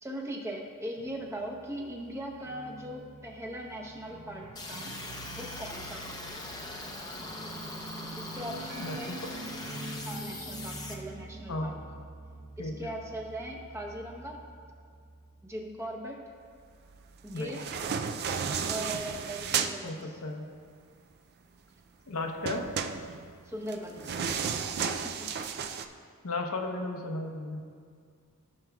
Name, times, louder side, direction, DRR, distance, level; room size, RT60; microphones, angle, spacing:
voice 1, 0.0-4.9 5.4-6.2 8.2-9.2 10.0-11.8 12.6-14.4 15.4-16.2 17.2-17.7 18.7-20.2 23.4-24.2 25.0-25.4, right 1 dB, 10° right, 1 dB, 0.8 m, -40 dB
sound 1, 1.0-16.3, right 2 dB, 80° right, 0.8 m, -46 dB
sound 2, 4.6-10.9, left 2 dB, 20° left, 0.7 m, -41 dB
voice 2, 8.8-9.3 11.5-11.7 12.6-12.7 17.3-17.6 19.8-20.5 22.1-22.7 26.2-27.6, left 2 dB, 75° left, 3 dB, 0.8 m, -34 dB
sound 3, 17.3-19.8 22.5-25.9, right 6 dB, 45° right, 0.4 m, -33 dB
15.0 x 5.9 x 2.3 m, 2.1 s
head